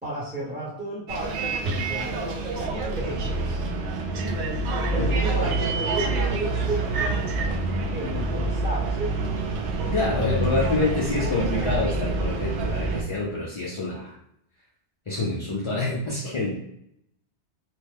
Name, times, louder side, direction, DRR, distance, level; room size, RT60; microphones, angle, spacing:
voice 1, 0.0-3.7 4.9-7.2 7.9-9.3 10.1-10.5, right 1 dB, 5° right, -8 dB, 1.0 m, -33 dB
Bus, 1.1-13.0, right 3 dB, 75° right, 0.9 m, -27 dB
voice 2, 5.0-5.6 9.9-14.1 15.1-16.6, left 2 dB, 35° left, -5 dB, 0.5 m, -27 dB
3.0 x 2.2 x 3.3 m, 0.77 s
omnidirectional pair, 1.2 m